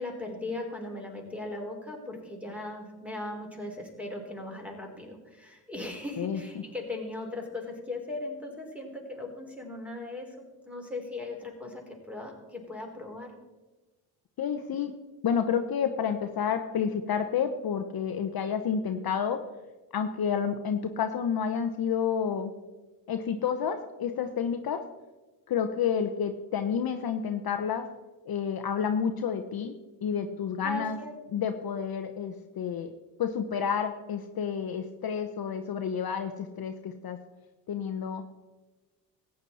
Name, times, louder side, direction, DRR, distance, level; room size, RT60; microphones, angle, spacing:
voice 1, 0.0-10.4 10.7-13.3 30.6-31.1, left 2 dB, 5° right, 2 dB, 3.3 m, -38 dB
voice 2, 14.4-14.9 15.2-19.4 19.9-22.5 23.1-24.8 25.5-27.8 28.3-29.7 30.0-31.0 31.3-32.9 33.2-37.2 37.7-38.2, left 7 dB, 45° left, 6 dB, 0.9 m, -30 dB
14.5 x 9.1 x 4.2 m, 1.2 s
supercardioid pair, 65°, 50 cm